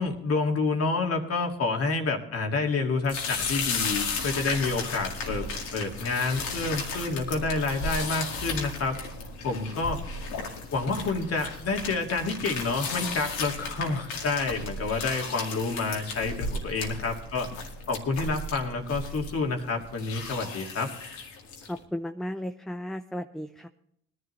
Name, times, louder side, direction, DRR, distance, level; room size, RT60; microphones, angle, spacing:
voice 1, 0.0-9.0 9.4-10.0 10.7-17.5 17.9-20.9, left 3 dB, 50° left, 2 dB, 2.2 m, -29 dB
sound 1, 3.0-21.8, left 3 dB, 85° left, 2.1 m, -35 dB
voice 2, 21.7-23.7, equal, ahead, 8 dB, 0.5 m, -35 dB
19.5 x 11.0 x 3.2 m, 0.71 s
supercardioid pair, 65°, 30 cm